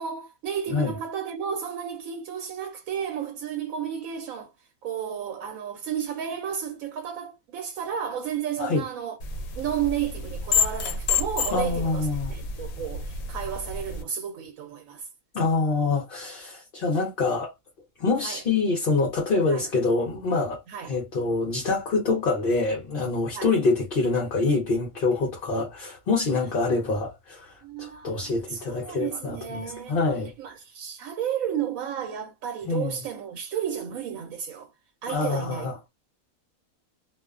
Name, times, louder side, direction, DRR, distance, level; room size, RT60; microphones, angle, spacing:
voice 1, 0.0-4.5 4.8-9.2 9.6-15.1 16.8-16.9 18.2-18.4 19.5-19.7 20.7-20.9 23.3-23.5 27.6-30.0 30.4-34.7 35.0-35.7, right 8 dB, 75° right, 1.0 m, -32 dB
sound 1, 9.2-14.0, left 5 dB, 80° left, 1.0 m, -29 dB
voice 2, 11.5-12.3 15.3-17.5 18.0-30.3 32.7-33.0 35.1-35.9, left 3 dB, 50° left, 0.8 m, -26 dB
2.5 x 2.2 x 2.3 m
omnidirectional pair, 1.4 m